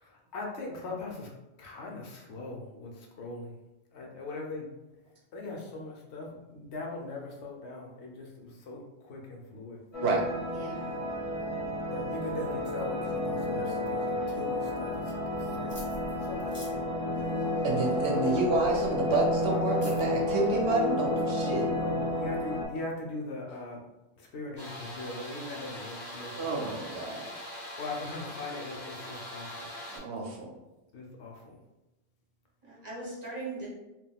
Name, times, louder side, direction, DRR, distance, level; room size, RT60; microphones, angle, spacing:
voice 1, 0.0-1.3 1.6-3.6 3.9-4.7 5.3-9.8 11.8-15.8 16.2-17.1 21.7-23.8 24.2-26.8 27.8-29.7 30.9-31.4, left 2 dB, 70° left, -1 dB, 0.9 m, -40 dB
sound 1, 9.9-22.7, left 1 dB, 40° left, 0.5 m, -31 dB
voice 2, 10.5-11.0 32.6-33.7, right 2 dB, 40° right, -6 dB, 0.9 m, -40 dB
sound 2, 15.7-21.3, equal, 10° left, 0.9 m, -50 dB
voice 3, 17.6-21.7 26.4-27.3 29.9-30.5, right 3 dB, 70° right, 0 dB, 0.8 m, -29 dB
sound 3, 24.6-30.0, left 1 dB, 10° right, 1.3 m, -42 dB
3.5 x 2.3 x 2.2 m, 0.99 s
omnidirectional pair, 1.2 m